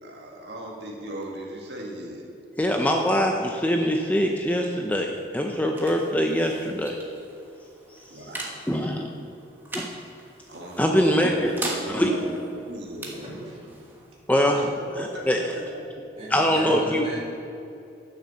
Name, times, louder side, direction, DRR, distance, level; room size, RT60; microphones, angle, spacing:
voice 1, 0.0-2.3 2.8-2.9 3.7-3.9 8.1-8.6 9.1-9.3 10.5-13.5 14.5-15.8, right 1 dB, 70° right, -1 dB, 1.7 m, -38 dB
voice 2, 2.6-7.0 8.7-9.1 10.8-11.5 11.9-12.3 14.3-14.7 15.0-15.4 16.3-17.0, equal, 10° left, 2 dB, 0.5 m, -23 dB
sound 1, 5.1-16.3, right 2 dB, 10° right, 1.3 m, -41 dB
voice 3, 13.1-13.9 16.2-17.2, right 1 dB, 30° right, -5 dB, 2.7 m, -37 dB
10.0 x 6.5 x 6.9 m, 2.7 s
head